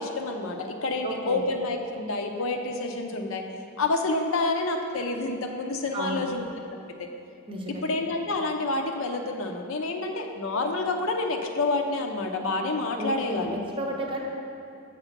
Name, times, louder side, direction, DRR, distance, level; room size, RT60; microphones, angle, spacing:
voice 1, 0.0-3.4 3.8-6.4 6.7-7.1 7.7-13.6, left 2 dB, 65° left, 4 dB, 0.6 m, -28 dB
voice 2, 1.0-1.5 5.9-6.2 7.5-7.8 13.0-14.2, right 1 dB, 25° right, 0 dB, 0.7 m, -33 dB
6.8 x 4.9 x 5.8 m, 2.7 s
head